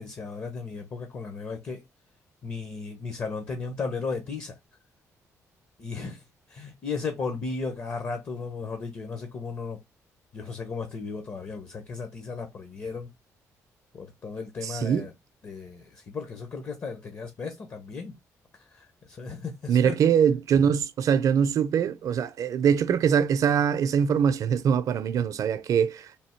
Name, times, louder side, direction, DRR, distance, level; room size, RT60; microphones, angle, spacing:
voice 1, 0.0-1.8 2.4-4.6 5.8-6.2 6.5-9.8 10.3-13.1 13.9-15.1 15.4-18.1 18.5-20.0, left 4 dB, 45° left, 0.8 m, -35 dB
voice 2, 14.6-15.1 19.7-26.2, right 7 dB, 60° right, 0.5 m, -23 dB
3.4 x 2.7 x 4.4 m
cardioid pair, 100°, 6 cm